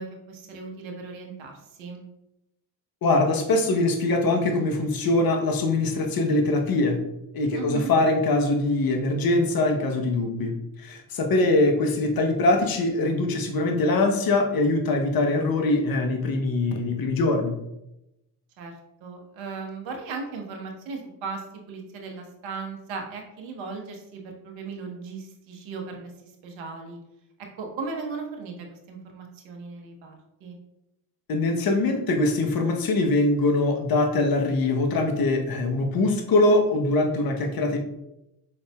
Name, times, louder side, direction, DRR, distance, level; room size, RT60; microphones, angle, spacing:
voice 1, 0.0-2.0 7.5-7.9 18.6-18.7 19.0-27.0 27.5-30.5, right 4 dB, 70° right, 2 dB, 1.2 m, -37 dB
voice 2, 3.0-7.0 7.3-17.6 31.3-37.8, left 2 dB, 45° left, 4 dB, 1.0 m, -23 dB
5.5 x 4.0 x 2.3 m, 0.88 s
hypercardioid pair, 55°, 48 cm